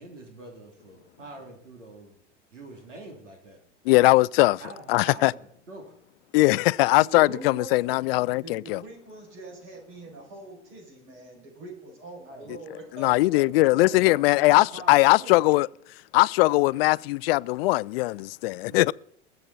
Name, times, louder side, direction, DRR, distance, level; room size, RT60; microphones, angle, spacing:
voice 1, 0.0-2.2 2.5-3.6 4.6-6.0 12.2-12.6 13.0-15.4 18.7-18.9, right 2 dB, 85° right, 3.0 m, -45 dB
voice 2, 3.9-4.6 4.9-5.3 6.3-8.8 12.9-15.7 16.1-18.9, left 21 dB, 55° left, 0.4 m, -20 dB
voice 3, 7.0-13.3 13.8-14.2, right 2 dB, 50° right, 6.3 m, -43 dB
20.5 x 7.7 x 4.1 m
figure-of-eight pair, 85°, 36 cm